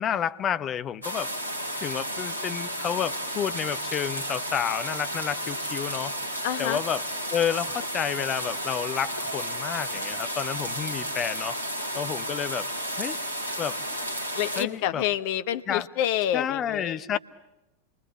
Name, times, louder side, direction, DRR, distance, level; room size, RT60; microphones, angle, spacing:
voice 1, 0.0-1.3 1.8-11.6 11.9-12.7 13.0-13.2 13.6-13.8 14.6-15.0 15.7-15.9 16.3-17.2, left 9 dB, 30° left, 0.9 m, -30 dB
sound 1, 1.0-14.6, equal, 80° left, 2.3 m, -32 dB
voice 2, 6.4-6.8 14.3-17.2, left 11 dB, 50° left, 1.2 m, -28 dB
28.0 x 23.5 x 8.4 m
figure-of-eight pair, 90°, 0 cm